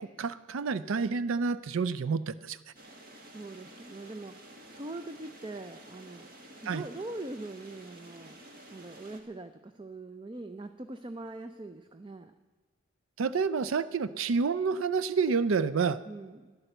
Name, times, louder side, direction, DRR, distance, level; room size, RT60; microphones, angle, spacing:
voice 1, 0.0-2.6 6.7-6.8 13.2-16.0, right 5 dB, 85° right, 16 dB, 0.4 m, -29 dB
sound 1, 2.7-9.2, right 1 dB, 45° right, 1.8 m, -51 dB
voice 2, 3.2-6.3 6.6-8.4 8.7-12.3 16.0-16.6, right 2 dB, 25° right, 9 dB, 0.5 m, -42 dB
12.5 x 11.0 x 7.8 m, 1.4 s
head